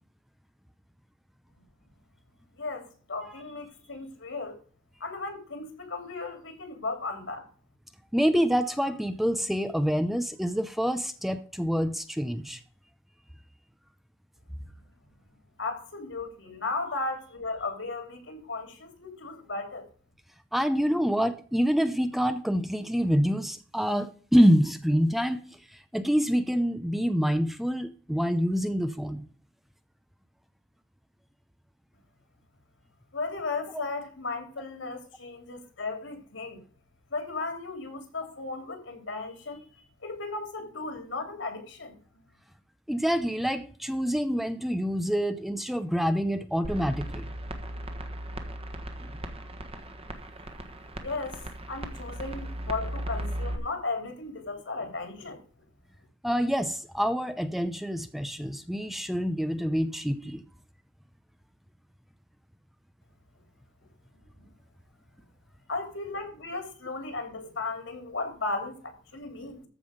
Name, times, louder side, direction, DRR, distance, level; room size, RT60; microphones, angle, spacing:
voice 1, 2.6-4.6 5.0-7.4 15.6-19.9 33.1-36.6 37.1-42.0 51.0-55.4 65.7-69.6, left 3 dB, 75° left, 3.1 m, -35 dB
voice 2, 8.1-12.6 20.5-25.4 25.7-29.3 33.7-33.8 42.9-47.3 49.0-49.1 56.2-60.4, equal, ahead, 0.6 m, -26 dB
sound 1, 46.6-53.6, right 1 dB, 30° right, 1.5 m, -37 dB
14.0 x 5.5 x 5.1 m
head